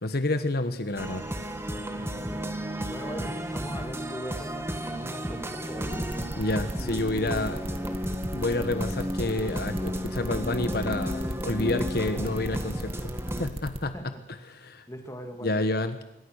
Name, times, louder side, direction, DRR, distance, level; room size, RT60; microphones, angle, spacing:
voice 1, 0.0-1.3 6.4-7.6 8.3-14.1 14.5-14.8 15.4-16.0, left 2 dB, 60° left, 9 dB, 1.4 m, -29 dB
sound 1, 1.0-13.5, equal, 15° right, 2.1 m, -33 dB
voice 2, 1.8-6.1 6.7-8.0 13.9-14.2 14.9-15.7, equal, 15° left, 5 dB, 2.8 m, -40 dB
sound 2, 5.8-13.8, right 1 dB, 30° right, 2.7 m, -36 dB
26.0 x 23.5 x 6.6 m, 0.90 s
head